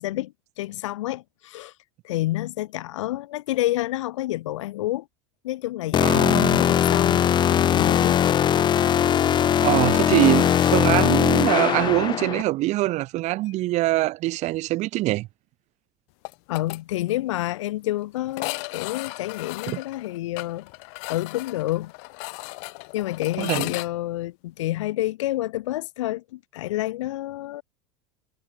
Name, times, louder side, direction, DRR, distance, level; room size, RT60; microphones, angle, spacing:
voice 1, 0.0-1.7 2.0-5.1 5.4-8.2 16.5-20.7 21.0-21.9 22.9-27.6, left 16 dB, 80° left, 1.8 m, -29 dB
sound 1, 5.9-12.4, left 9 dB, 30° left, 0.8 m, -20 dB
voice 2, 6.0-6.7 9.6-15.3 19.7-19.8 23.4-23.7, right 18 dB, 50° right, 0.9 m, -23 dB
sound 2, 16.2-16.8 17.1-17.2 17.5-17.6 18.3-23.9, left 39 dB, 65° left, 2.0 m, -35 dB
supercardioid pair, 110°, 16 cm